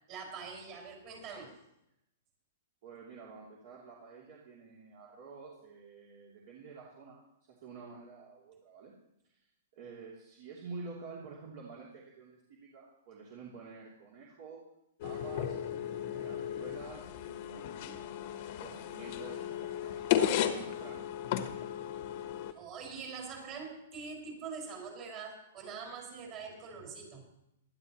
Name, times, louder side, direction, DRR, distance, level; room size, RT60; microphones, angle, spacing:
voice 1, 0.1-1.6 22.5-27.2, right 5 dB, 35° right, 1 dB, 5.3 m, -44 dB
voice 2, 2.8-7.2 7.5-8.9 9.7-14.6 15.0-15.6 16.0-20.0 20.5-21.0, right 4 dB, 50° right, -4 dB, 3.0 m, -49 dB
sound 1, 15.0-22.5, left 10 dB, 45° left, 1.1 m, -35 dB
18.5 x 12.5 x 3.1 m, 0.82 s
hypercardioid pair, 160°, 0 cm